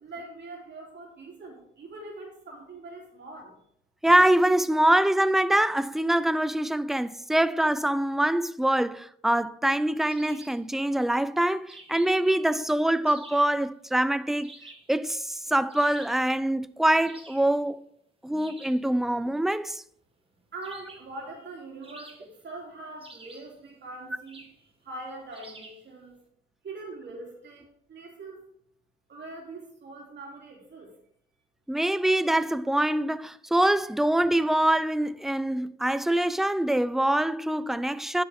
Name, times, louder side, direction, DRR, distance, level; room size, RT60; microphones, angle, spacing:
voice 1, 0.0-3.6 20.5-24.4 24.8-26.1 26.6-28.5 29.1-30.9, right 2 dB, 60° right, 3.2 m, -42 dB
voice 2, 4.0-14.5 14.9-17.8 18.2-19.8 31.7-38.2, right 1 dB, ahead, 0.4 m, -24 dB
sound 1, 10.1-10.7 11.7-12.3 13.1-13.6 14.4-15.0 15.7-16.3 17.0-17.5 18.4-18.9 20.6-21.2 21.8-22.5 23.0-23.6 24.3-24.6 25.3-25.9, right 2 dB, 25° right, 1.7 m, -49 dB
11.0 x 7.0 x 3.6 m
cardioid pair, 80°, 21 cm